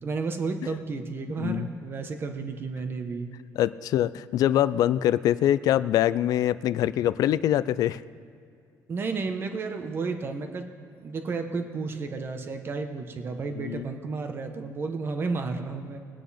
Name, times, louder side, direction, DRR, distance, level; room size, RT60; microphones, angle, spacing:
voice 1, 0.0-3.3 8.9-10.7 11.0-16.0, right 4 dB, 35° right, 6 dB, 1.2 m, -32 dB
voice 2, 1.4-1.7 3.6-8.0 13.6-13.9, left 12 dB, 65° left, 16 dB, 0.4 m, -24 dB
22.0 x 9.1 x 4.3 m, 2.4 s
cardioid pair, 145°, 7 cm